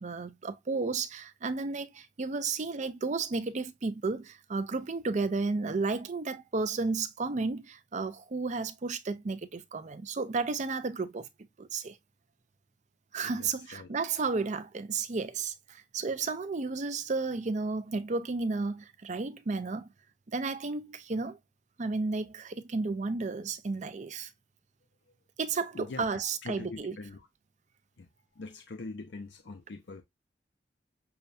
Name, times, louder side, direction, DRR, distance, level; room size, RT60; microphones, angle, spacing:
voice 1, 0.0-11.3 11.6-12.0 13.1-19.9 20.3-21.4 21.8-24.3 25.4-26.9, right 4 dB, 40° right, 0.5 m, -33 dB
voice 2, 13.2-13.9 25.1-25.2 25.7-27.3 28.0-30.0, left 3 dB, 65° left, 0.6 m, -43 dB
6.8 x 2.3 x 2.6 m
head